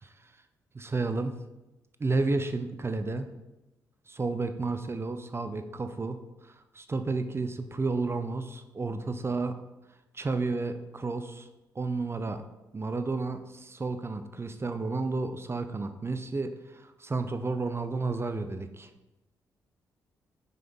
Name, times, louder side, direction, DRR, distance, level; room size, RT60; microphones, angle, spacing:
voice 1, 0.7-1.4 2.0-3.3 4.1-9.6 10.1-11.5 11.8-12.4 12.7-18.9, right 3 dB, 30° right, 9 dB, 0.6 m, -32 dB
5.5 x 5.4 x 3.9 m, 0.99 s
hypercardioid pair, 40°, 8 cm